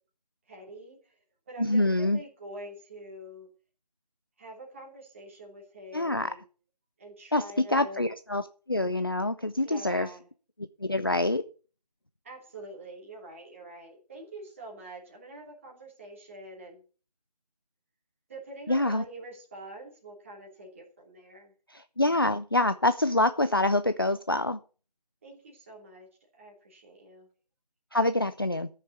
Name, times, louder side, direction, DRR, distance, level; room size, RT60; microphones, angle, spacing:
voice 1, 0.5-1.2 1.5-3.5 4.4-6.4 7.0-8.1 9.6-10.3 12.2-16.8 18.3-21.5 25.2-26.1 26.3-27.3, right 1 dB, 20° right, 3.1 m, -45 dB
voice 2, 1.6-2.2 5.9-6.3 7.3-7.4 7.7-8.4 8.7-10.1 10.8-11.4 18.7-19.0 21.7-24.6 27.9-28.7, left 2 dB, 35° left, 0.5 m, -26 dB
14.0 x 6.6 x 6.7 m
figure-of-eight pair, 165°, 21 cm